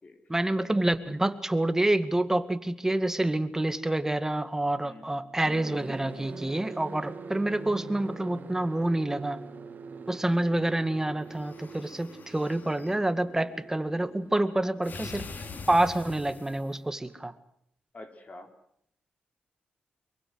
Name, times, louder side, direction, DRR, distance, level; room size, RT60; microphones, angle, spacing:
voice 1, 0.3-9.4 10.1-15.3 15.7-17.3, right 1 dB, 15° right, 11 dB, 2.1 m, -27 dB
voice 2, 4.8-5.4 17.9-18.5, left 2 dB, 40° left, 6 dB, 4.3 m, -48 dB
sound 1, 5.4-17.2, right 5 dB, 55° right, 2.6 m, -45 dB
sound 2, 11.2-13.0 14.8-16.8, left 4 dB, 55° left, 2.8 m, -44 dB
24.0 x 22.5 x 8.0 m, 0.70 s
cardioid pair, 65°, 4 cm